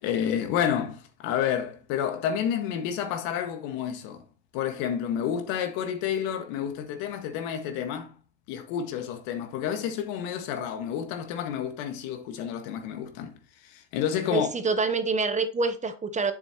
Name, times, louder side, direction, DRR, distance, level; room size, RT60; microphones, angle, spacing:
voice 1, 0.0-4.2 4.5-8.2 8.5-13.4 13.6-14.5, left 9 dB, 80° left, 1.7 m, -30 dB
voice 2, 14.3-16.3, right 4 dB, 20° right, 0.9 m, -26 dB
7.9 x 6.9 x 2.9 m
cardioid pair, 120°, 35 cm